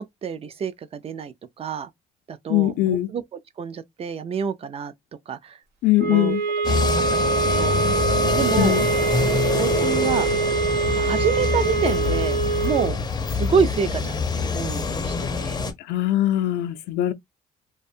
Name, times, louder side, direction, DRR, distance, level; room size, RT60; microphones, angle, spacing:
voice 1, 0.0-1.9 2.3-3.2 3.6-4.9 5.3-5.6 6.0-6.4 7.1-7.8 8.3-8.8 9.5-10.3 10.9-13.0 13.3-15.6, right 6 dB, 35° right, 0.4 m, -28 dB
voice 2, 2.5-3.1 5.8-6.4 8.6-8.9 15.9-17.1, left 14 dB, 75° left, 0.4 m, -21 dB
sound 1, 6.0-13.0, right 4 dB, 75° right, 0.6 m, -24 dB
sound 2, 6.6-15.7, left 4 dB, 25° left, 0.5 m, -25 dB
2.5 x 2.2 x 2.6 m
cardioid pair, 110°, 17 cm